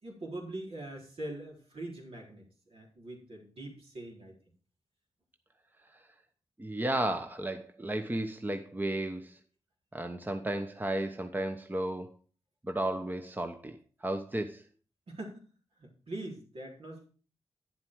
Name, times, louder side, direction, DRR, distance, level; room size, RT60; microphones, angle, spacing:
voice 1, 0.0-4.4 15.1-15.4 15.8-17.1, right 1 dB, 65° right, 3.8 m, -43 dB
voice 2, 6.6-9.4 9.9-12.1 12.6-14.6, right 1 dB, 15° right, 1.0 m, -33 dB
9.9 x 7.5 x 4.7 m
cardioid pair, 50°, 11 cm